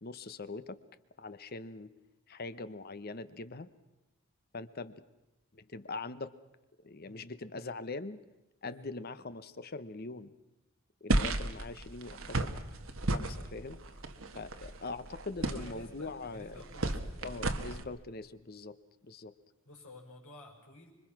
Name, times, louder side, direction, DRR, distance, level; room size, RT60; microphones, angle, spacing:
voice 1, 0.0-0.8 1.2-1.9 2.3-3.7 4.5-5.0 5.5-6.3 6.8-8.2 8.6-10.3 11.0-12.5 13.1-13.8 14.3-16.6 17.2-18.8 19.0-19.3, left 3 dB, 45° left, 14 dB, 0.9 m, -42 dB
sound 1, 11.1-17.8, right 2 dB, 65° right, 1.5 m, -34 dB
voice 2, 15.4-17.1 19.7-20.9, left 2 dB, 75° left, 1 dB, 5.9 m, -51 dB
26.0 x 23.0 x 6.0 m, 0.99 s
head